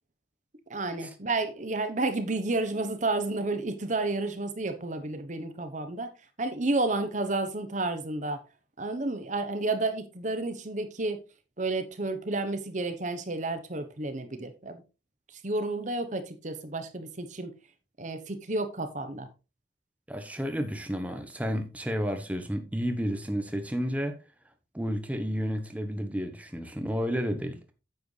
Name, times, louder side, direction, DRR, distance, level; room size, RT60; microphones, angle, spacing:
voice 1, 0.7-6.1 6.4-8.4 8.8-11.2 11.6-14.8 15.3-17.5 18.0-19.3, right 2 dB, 45° right, 1.0 m, -31 dB
voice 2, 20.1-24.2 24.7-27.7, equal, 10° right, 1.1 m, -31 dB
9.4 x 7.7 x 3.3 m
head